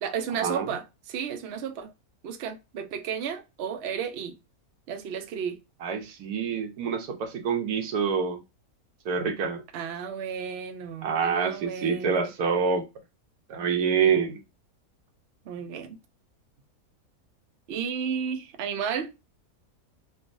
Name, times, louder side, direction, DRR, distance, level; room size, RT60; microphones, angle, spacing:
voice 1, 0.0-1.9 2.2-4.4 4.9-5.6 9.7-12.3 15.5-16.0 17.7-19.1, right 7 dB, 60° right, 0.7 m, -33 dB
voice 2, 5.8-8.4 9.0-9.6 11.0-12.9 13.5-14.4, right 6 dB, 80° right, 1.2 m, -26 dB
3.4 x 2.5 x 2.5 m
omnidirectional pair, 1.6 m